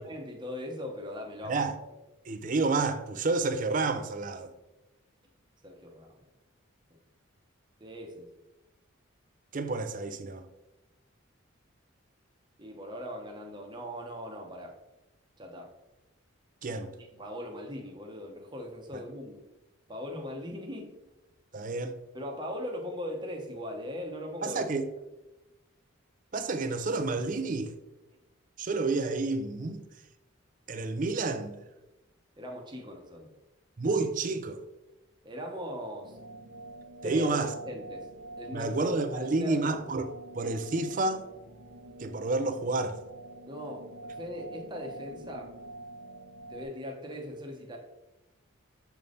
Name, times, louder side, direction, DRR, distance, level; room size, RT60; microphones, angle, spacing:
voice 1, 0.0-1.6 5.6-6.2 7.8-8.3 12.6-14.8 15.4-15.7 16.7-19.4 19.9-21.0 22.1-24.6 32.4-33.3 35.2-36.2 37.0-37.4 37.6-38.1 38.4-39.7 43.5-45.5 46.5-47.8, equal, 20° right, 0.9 m, -40 dB
voice 2, 2.3-4.5 9.5-10.5 16.6-16.9 21.5-21.9 24.4-24.9 26.3-27.7 28.6-29.8 30.7-31.6 33.8-34.6 37.0-37.5 38.5-40.1 40.3-41.2 42.0-43.0, right 3 dB, 40° right, 0.5 m, -29 dB
sound 1, 36.0-46.6, right 2 dB, 85° right, 0.8 m, -46 dB
7.0 x 3.5 x 3.9 m
head